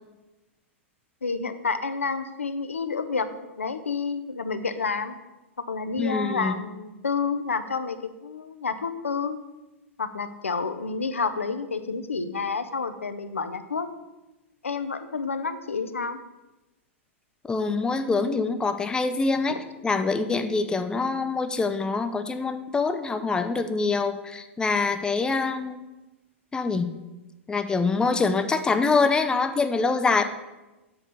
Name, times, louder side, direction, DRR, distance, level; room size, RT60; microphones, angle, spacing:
voice 1, 1.2-5.1 5.6-9.4 10.0-13.9 14.6-16.2 19.5-19.6, left 4 dB, 75° left, 10 dB, 0.6 m, -29 dB
voice 2, 6.0-6.6 17.5-19.6 19.8-25.8 26.5-26.9 27.5-30.2, left 4 dB, 10° left, 9 dB, 0.5 m, -25 dB
7.0 x 4.2 x 6.5 m, 1.1 s
figure-of-eight pair, 95°, 7 cm